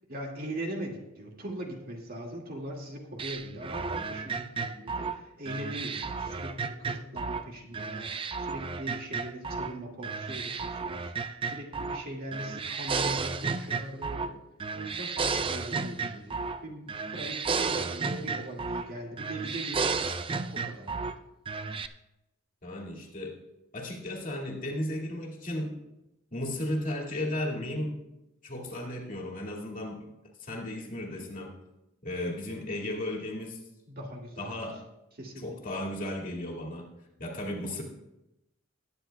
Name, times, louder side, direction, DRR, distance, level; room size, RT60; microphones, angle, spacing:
voice 1, 0.1-14.3 14.7-20.0 20.5-21.1 33.9-34.6 35.2-35.6, right 1 dB, 45° right, 0 dB, 2.1 m, -40 dB
sound 1, 3.2-7.5 7.7-9.7 10.0-12.0 12.3-14.3 14.6-16.6 16.9-18.9 19.2-21.1 21.4-21.9, right 5 dB, 25° right, 0.4 m, -33 dB
voice 2, 22.6-23.4 23.7-25.8 26.3-28.0 28.4-30.0 30.4-31.6 32.0-33.6 34.4-34.8 35.4-36.9 37.2-37.8, left 1 dB, 40° left, -1 dB, 2.1 m, -34 dB
20.0 x 9.8 x 2.3 m, 0.91 s
head